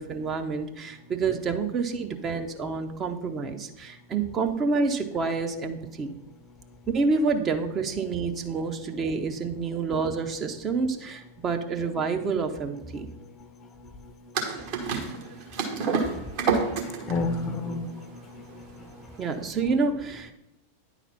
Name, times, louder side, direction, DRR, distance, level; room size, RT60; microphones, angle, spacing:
voice 1, 0.0-6.2 6.9-13.1 19.2-20.3, right 4 dB, 25° right, 5 dB, 0.8 m, -28 dB
sound 1, 14.3-19.5, right 5 dB, 45° right, 1.5 m, -29 dB
voice 2, 16.6-18.0 18.3-18.6, left 3 dB, 25° left, 9 dB, 0.7 m, -31 dB
9.9 x 4.1 x 5.8 m, 0.85 s
figure-of-eight pair, 90°, 0 cm